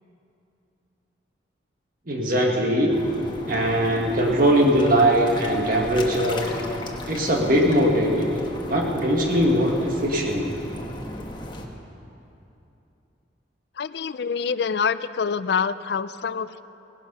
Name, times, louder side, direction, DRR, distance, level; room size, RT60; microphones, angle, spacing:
voice 1, 2.1-2.9 3.5-6.5 7.1-10.4, equal, 50° right, 0 dB, 1.5 m, -21 dB
sound 1, 2.9-11.7, left 1 dB, 25° left, 1.1 m, -35 dB
voice 2, 13.8-16.6, left 6 dB, 60° left, 15 dB, 0.4 m, -26 dB
17.0 x 12.0 x 5.4 m, 2.8 s
head